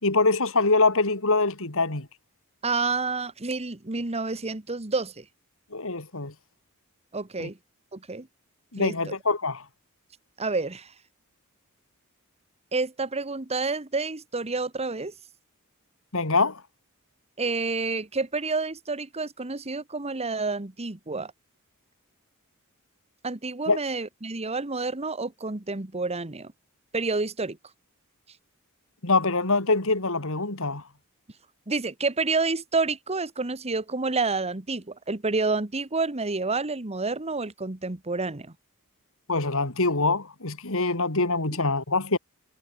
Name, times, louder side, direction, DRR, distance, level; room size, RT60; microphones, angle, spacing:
voice 1, 0.0-2.1 5.7-6.3 7.4-7.5 8.7-9.6 16.1-16.6 23.7-23.8 29.0-30.8 39.3-42.2, left 3 dB, 65° left, 3.7 m, -24 dB
voice 2, 2.6-5.2 7.1-7.6 7.9-8.3 8.8-8.9 10.4-10.9 12.7-15.1 17.4-21.3 23.2-26.5 26.9-27.6 31.7-38.5, right 3 dB, 30° right, 1.4 m, -29 dB
head